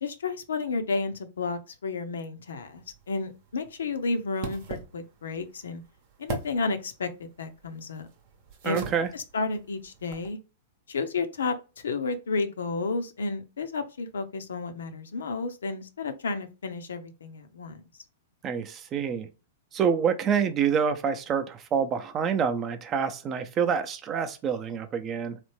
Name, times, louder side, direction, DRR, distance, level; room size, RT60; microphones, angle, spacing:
voice 1, 0.0-5.8 6.2-8.1 8.6-8.8 9.1-10.4 10.9-11.5 11.8-17.8, left 4 dB, 75° left, 0.5 m, -32 dB
sound 1, 2.6-10.3, right 4 dB, 50° right, 0.8 m, -42 dB
voice 2, 8.6-9.1 18.4-19.3 19.7-25.4, right 7 dB, 30° right, 0.5 m, -27 dB
3.2 x 2.1 x 3.0 m
hypercardioid pair, 105°, 0 cm